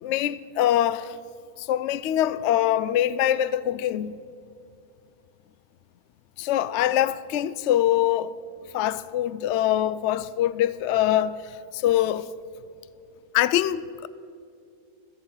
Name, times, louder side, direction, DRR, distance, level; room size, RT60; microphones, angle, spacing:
voice 1, 0.0-1.1 1.7-4.2 6.4-8.3 8.7-11.4 11.7-12.3 13.3-14.1, left 12 dB, 70° left, 0.6 m, -23 dB
14.5 x 14.5 x 5.6 m
omnidirectional pair, 1.7 m